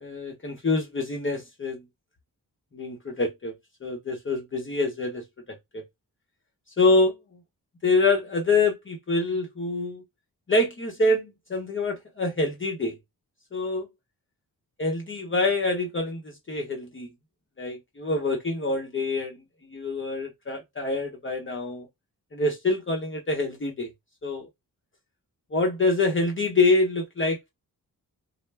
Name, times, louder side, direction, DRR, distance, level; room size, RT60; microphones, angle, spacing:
voice 1, 0.0-1.8 2.7-3.5 3.8-5.2 5.7-5.8 6.8-7.1 7.8-10.0 10.5-12.9 13.5-13.9 14.8-17.1 17.6-19.4 19.7-21.9 22.3-23.9 24.2-24.5 25.5-27.5, left 2 dB, 35° left, 0.8 m, -25 dB
2.1 x 2.0 x 3.3 m
cardioid pair, 60°, 37 cm